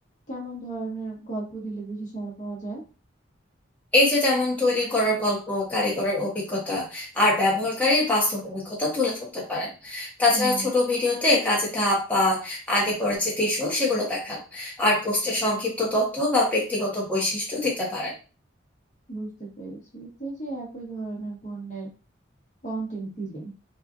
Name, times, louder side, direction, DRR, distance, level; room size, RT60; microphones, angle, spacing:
voice 1, 0.3-2.8 10.3-10.7 19.1-21.9 22.6-23.5, right 3 dB, 35° left, -4 dB, 1.4 m, -34 dB
voice 2, 3.9-18.1, left 2 dB, 10° left, -5 dB, 1.1 m, -24 dB
4.3 x 2.4 x 2.5 m, 0.35 s
head